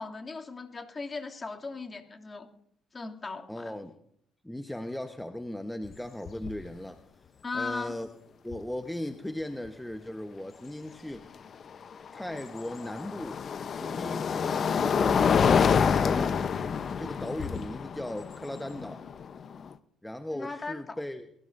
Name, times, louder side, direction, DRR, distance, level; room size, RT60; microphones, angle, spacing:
voice 1, 0.0-2.5 2.9-3.8 7.4-8.0 20.3-21.0, left 4 dB, 30° left, 2 dB, 2.7 m, -37 dB
voice 2, 3.5-3.9 4.4-7.0 7.5-8.1 8.4-11.3 12.1-13.4 13.8-15.3 15.9-16.4 17.0-19.1 20.0-21.3, left 1 dB, 5° left, 7 dB, 1.1 m, -37 dB
sound 1, 5.8-6.0 6.3-6.7 8.5-8.6 11.6-19.7, left 6 dB, 50° left, 0.8 m, -27 dB
23.0 x 16.0 x 2.7 m, 0.71 s
hypercardioid pair, 55°, 0 cm